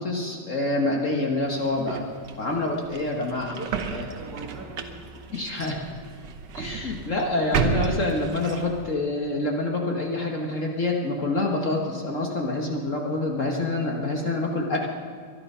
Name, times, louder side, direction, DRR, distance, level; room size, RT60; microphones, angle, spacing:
voice 1, 0.0-2.0 2.4-3.6 3.9-4.0 5.3-5.8 6.5-14.9, left 2 dB, 45° left, 1 dB, 1.7 m, -27 dB
sound 1, 1.4-8.9, right 6 dB, 75° right, 1.7 m, -33 dB
voice 2, 3.6-5.1 6.1-6.2 6.4-6.8 7.0-7.4, right 3 dB, 55° right, 1 dB, 2.8 m, -42 dB
23.5 x 11.0 x 5.6 m, 2.1 s
omnidirectional pair, 1.9 m